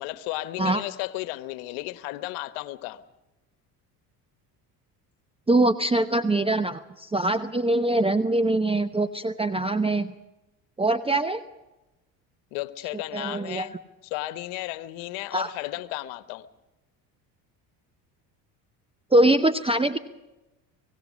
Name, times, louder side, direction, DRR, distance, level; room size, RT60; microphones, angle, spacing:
voice 1, 0.0-3.0 12.5-13.7 14.1-16.5, left 17 dB, 75° left, 1.3 m, -34 dB
voice 2, 5.5-10.1 10.8-11.4 13.1-13.7 15.3-15.5 19.1-20.0, right 2 dB, 10° right, 0.9 m, -23 dB
24.5 x 18.5 x 6.3 m
supercardioid pair, 70°, 49 cm